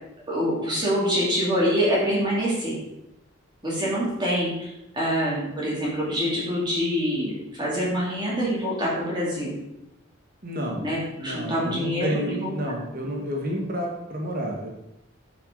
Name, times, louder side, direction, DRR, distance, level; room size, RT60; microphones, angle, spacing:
voice 1, 0.3-2.8 3.6-9.5 10.8-12.5, equal, 20° right, -6 dB, 2.9 m, -25 dB
voice 2, 10.4-10.8 11.2-14.7, equal, 45° right, 0 dB, 1.7 m, -30 dB
11.0 x 6.3 x 3.9 m, 0.88 s
head